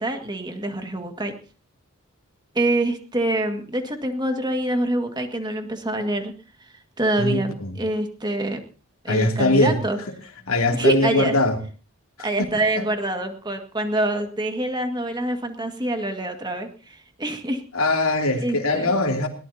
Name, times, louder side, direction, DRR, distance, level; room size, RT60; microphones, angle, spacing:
voice 1, 0.0-1.3 2.5-6.3 6.6-8.6 9.0-10.0 10.7-11.4 12.2-17.6 18.3-18.9, right 1 dB, 20° right, 2.0 m, -26 dB
voice 2, 7.2-7.7 9.1-9.8 10.5-11.6 12.8-12.9 17.7-19.3, left 2 dB, 75° left, 2.9 m, -21 dB
21.5 x 18.0 x 2.9 m
head